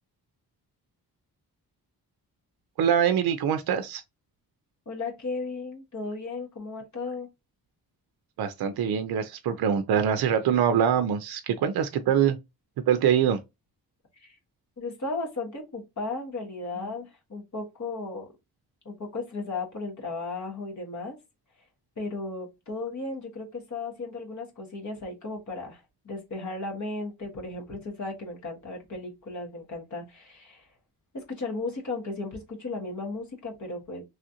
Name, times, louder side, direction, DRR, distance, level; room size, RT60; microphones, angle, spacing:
voice 1, 2.8-4.0 8.4-12.4 12.9-13.4, right 8 dB, 70° right, 0.5 m, -24 dB
voice 2, 4.8-7.3 14.1-14.4 14.8-18.3 18.8-21.2 22.0-30.7 31.1-34.0, left 3 dB, 50° left, 1.3 m, -35 dB
3.1 x 2.4 x 2.7 m
cardioid pair, 75°, 38 cm